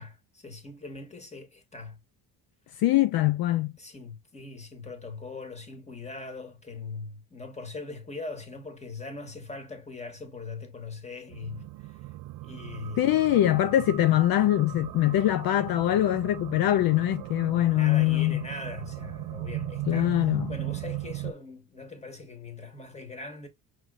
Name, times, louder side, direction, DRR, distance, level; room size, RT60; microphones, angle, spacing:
voice 1, 0.0-2.0 3.8-12.0 12.4-13.6 17.4-23.5, left 3 dB, 15° left, 1.4 m, -41 dB
voice 2, 2.8-3.7 13.0-18.4 19.9-20.5, left 14 dB, 65° left, 0.5 m, -23 dB
sound 1, 11.3-21.3, right 16 dB, 65° right, 0.5 m, -38 dB
5.6 x 3.2 x 2.5 m
cardioid pair, 120°, 39 cm